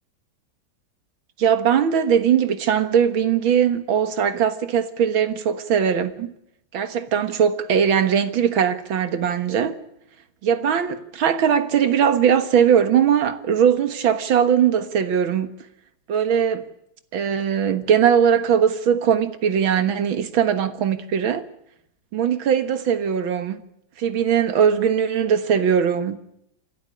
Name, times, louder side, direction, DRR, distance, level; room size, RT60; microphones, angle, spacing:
voice 1, 1.4-6.3 6.7-9.8 10.4-15.5 16.1-16.6 17.1-21.4 22.1-23.6 24.0-26.2, right 8 dB, 85° right, 2.2 m, -20 dB
27.5 x 12.0 x 9.8 m
omnidirectional pair, 2.1 m